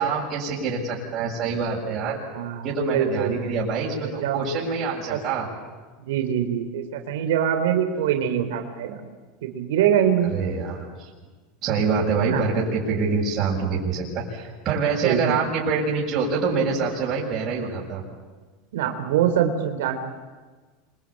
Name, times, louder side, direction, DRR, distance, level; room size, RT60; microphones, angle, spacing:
voice 1, 0.0-2.2 2.6-5.5 10.3-11.1 11.6-18.0, right 4 dB, 40° right, -4 dB, 7.1 m, -25 dB
voice 2, 2.3-3.5 4.2-4.4 5.1-5.2 6.0-9.0 9.4-10.3 12.2-12.5 15.0-15.4 18.7-19.9, right 9 dB, 80° right, 6 dB, 3.2 m, -24 dB
27.0 x 24.0 x 8.6 m, 1.3 s
supercardioid pair, 125°, 0 cm